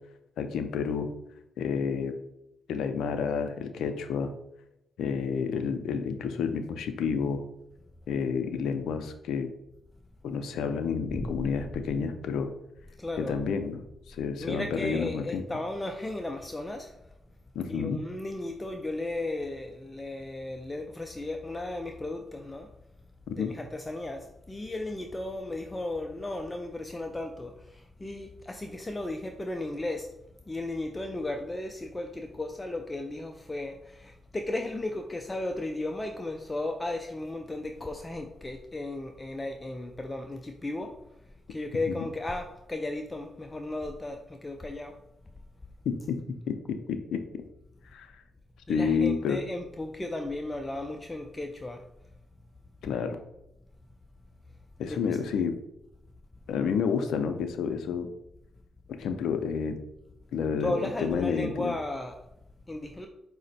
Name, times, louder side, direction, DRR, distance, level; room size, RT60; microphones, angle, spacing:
voice 1, 0.4-1.1 1.6-2.1 2.7-4.3 5.0-7.4 8.1-9.5 10.2-12.5 13.2-15.4 17.5-18.0 23.4-23.5 41.9-42.0 45.9-46.2 46.5-46.6 46.9-47.4 47.9-48.2 48.7-49.4 52.8-53.2 54.8-55.6 56.5-58.1 59.0-59.8 60.3-61.7, left 6 dB, 85° left, 8 dB, 0.4 m, -30 dB
voice 2, 11.1-11.5 13.0-13.4 14.4-17.1 17.7-22.7 23.4-30.1 30.5-41.0 41.5-45.0 48.7-51.8 54.9-55.2 60.6-62.3 62.7-63.1, left 2 dB, 20° left, 4 dB, 0.4 m, -35 dB
5.0 x 2.1 x 4.0 m, 0.89 s
cardioid pair, 70°, 0 cm